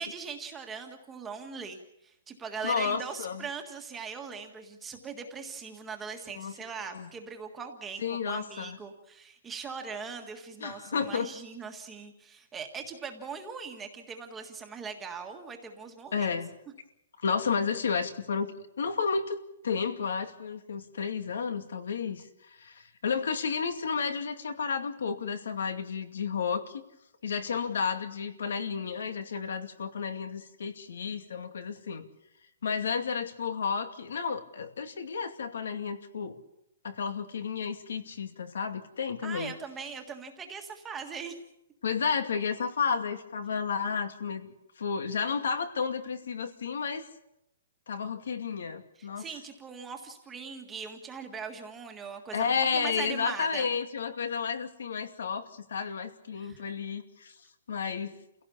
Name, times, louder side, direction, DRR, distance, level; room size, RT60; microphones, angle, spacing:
voice 1, 0.0-16.3 39.2-41.3 49.0-53.7 56.3-56.6, right 5 dB, 10° right, 4 dB, 1.7 m, -40 dB
voice 2, 2.6-3.4 6.3-6.5 6.8-7.1 8.0-8.8 10.6-11.3 16.1-16.5 17.2-19.4 19.6-26.8 27.2-32.1 32.6-36.4 36.8-39.5 41.8-47.1 47.9-49.3 52.3-57.3 57.7-58.1, left 6 dB, 75° left, 8 dB, 2.4 m, -32 dB
28.5 x 17.0 x 7.1 m, 0.85 s
hypercardioid pair, 175°, 0 cm